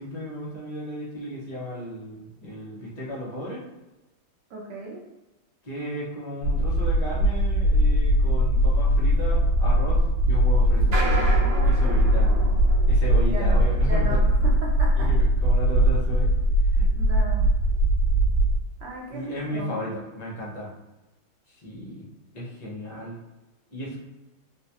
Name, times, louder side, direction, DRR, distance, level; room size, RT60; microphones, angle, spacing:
voice 1, 0.0-3.6 5.6-11.0 11.6-12.3 12.9-14.2 15.0-16.4 16.6-16.9 19.1-20.7 21.5-22.1 22.3-23.2 23.7-24.0, equal, 60° left, -6 dB, 0.4 m, -34 dB
voice 2, 4.5-5.0 11.4-12.6 13.1-15.1 16.9-17.5 18.8-19.9, right 2 dB, 70° right, -3 dB, 1.2 m, -37 dB
sound 1, 6.4-18.6, equal, 75° left, 1.3 m, -20 dB
sound 2, 7.4-7.6 7.9-8.0 8.7-8.8 9.5-9.8 10.7-17.0 17.6-17.8 18.1-18.2 18.7-18.8 19.3-19.4, right 2 dB, 85° right, 0.5 m, -36 dB
3.9 x 2.2 x 2.8 m, 1.1 s
omnidirectional pair, 2.3 m